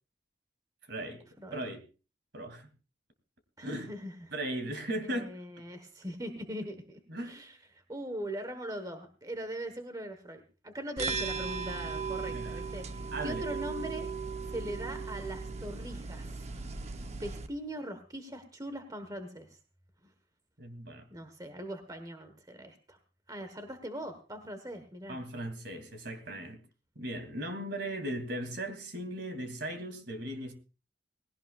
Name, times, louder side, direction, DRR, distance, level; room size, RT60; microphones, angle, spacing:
voice 1, 0.9-1.2 1.5-1.8 2.3-2.7 3.6-3.9 4.3-5.4 7.1-7.3 12.3-12.6 13.1-13.6 20.6-21.1 25.1-26.6 26.9-30.5, right 1 dB, 60° right, 8 dB, 2.7 m, -37 dB
voice 2, 1.4-1.7 3.6-4.3 5.0-14.1 14.5-16.5 17.2-19.6 20.0-20.1 21.1-23.0 23.3-25.2, equal, 20° right, 8 dB, 1.3 m, -41 dB
sound 1, 11.0-17.5, right 4 dB, 35° right, 0.8 m, -37 dB
19.5 x 17.0 x 2.4 m, 0.33 s
head